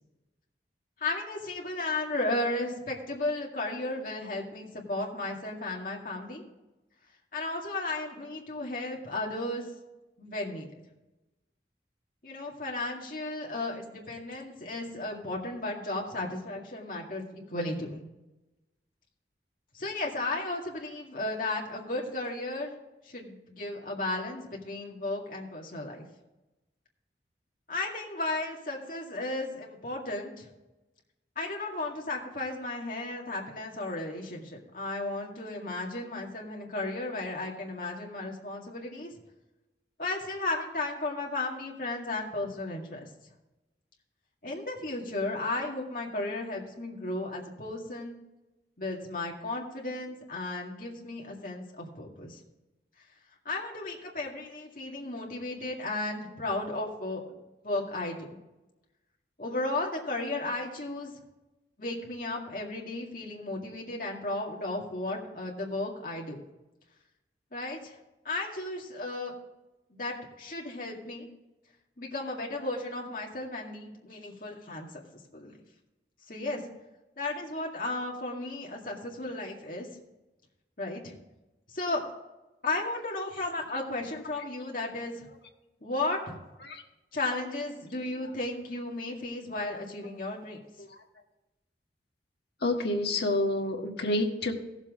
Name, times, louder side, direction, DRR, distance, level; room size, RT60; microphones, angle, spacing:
voice 1, 1.0-6.4 7.3-9.7 10.2-10.7 12.2-18.1 19.7-22.8 23.0-26.0 27.7-30.5 31.4-39.1 40.0-43.1 44.4-48.2 48.8-52.4 53.5-57.4 57.6-58.3 59.4-61.1 61.8-66.4 67.5-68.0 68.2-69.3 69.9-71.3 72.0-75.0 75.3-75.5 76.3-76.6 77.2-79.9 80.8-81.2 81.7-82.1 82.6-85.3 85.8-86.4 87.1-90.6, left 2 dB, 50° left, -1 dB, 2.1 m, -34 dB
voice 2, 92.6-94.5, left 2 dB, 65° left, 1 dB, 1.5 m, -29 dB
16.5 x 7.3 x 3.7 m, 1.0 s
head